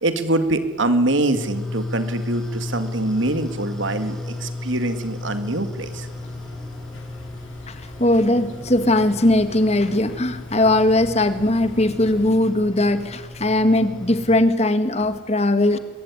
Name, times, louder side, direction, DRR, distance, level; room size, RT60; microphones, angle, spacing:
voice 1, 0.0-6.1, right 2 dB, 75° right, 9 dB, 2.4 m, -24 dB
sound 1, 1.3-14.4, left 2 dB, 5° left, 6.2 m, -34 dB
sound 2, 5.8-12.4, left 1 dB, 75° left, 3.0 m, -43 dB
voice 2, 8.0-15.8, left 1 dB, 35° left, 11 dB, 1.8 m, -19 dB
23.5 x 22.5 x 9.8 m, 1.2 s
head